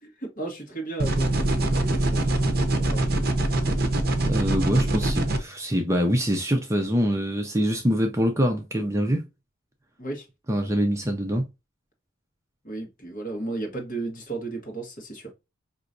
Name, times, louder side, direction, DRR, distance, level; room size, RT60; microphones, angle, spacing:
voice 1, 0.0-2.3 2.8-3.1 10.0-10.3 12.6-15.3, right 2 dB, 40° left, 1.4 m, -34 dB
sound 1, 1.0-5.4, right 1 dB, 45° right, 0.7 m, -23 dB
voice 2, 4.3-9.2 10.5-11.5, equal, 15° right, 0.5 m, -24 dB
4.7 x 3.0 x 2.5 m
head